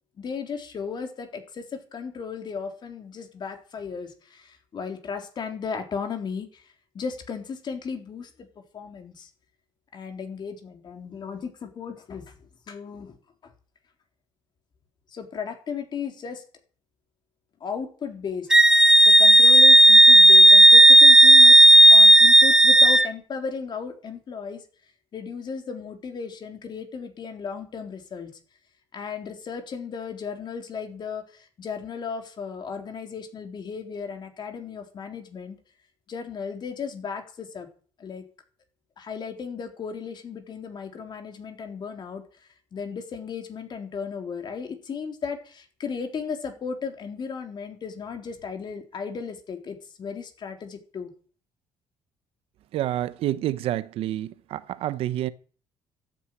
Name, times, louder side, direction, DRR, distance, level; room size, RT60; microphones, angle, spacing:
voice 1, 0.2-8.3 8.7-9.3 9.9-12.3 12.7-13.2 15.1-16.4 17.6-18.5 19.0-24.6 25.1-28.3 28.9-35.6 36.1-37.7 38.0-38.2 39.0-51.1, left 6 dB, 50° left, 4.0 m, -35 dB
Wind instrument woodwind instrument, 18.5-23.1, right 1 dB, 5° right, 0.8 m, -12 dB
voice 2, 52.7-55.3, right 13 dB, 75° right, 1.1 m, -28 dB
13.0 x 9.4 x 9.2 m
cardioid pair, 90°, 10 cm